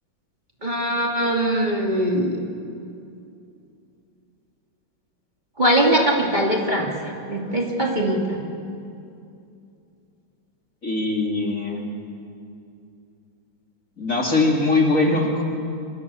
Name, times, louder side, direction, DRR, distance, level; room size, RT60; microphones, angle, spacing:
voice 1, 0.6-2.4 5.6-6.9 7.3-8.4, right 1 dB, 25° right, -1 dB, 2.9 m, -21 dB
voice 2, 10.8-11.9 14.0-15.4, left 2 dB, 40° left, 0 dB, 3.4 m, -21 dB
30.0 x 25.0 x 7.1 m, 2.5 s
omnidirectional pair, 2.1 m